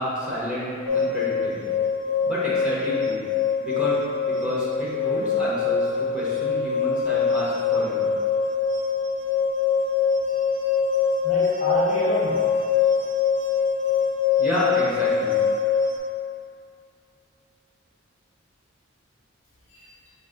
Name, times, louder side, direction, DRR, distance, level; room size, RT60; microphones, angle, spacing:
voice 1, 0.0-1.7 2.2-3.2 3.6-4.0 4.2-8.1 14.4-15.4, left 1 dB, 5° right, -9 dB, 1.0 m, -30 dB
sound 1, 0.9-16.0, left 6 dB, 70° right, 0.5 m, -23 dB
voice 2, 10.3-10.8 11.2-12.7 19.8-19.9, equal, 35° left, -7 dB, 0.6 m, -29 dB
4.9 x 2.5 x 3.8 m, 2.4 s
head